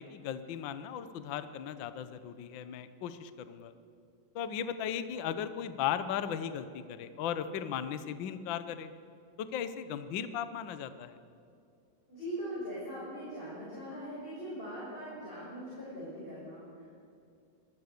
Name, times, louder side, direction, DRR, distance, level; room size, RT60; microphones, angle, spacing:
voice 1, 0.0-3.7 4.3-8.9 9.4-11.2, left 9 dB, 60° left, 11 dB, 1.2 m, -37 dB
voice 2, 12.1-17.0, equal, 15° left, -8 dB, 6.5 m, -41 dB
25.5 x 19.0 x 6.8 m, 2.5 s
omnidirectional pair, 3.4 m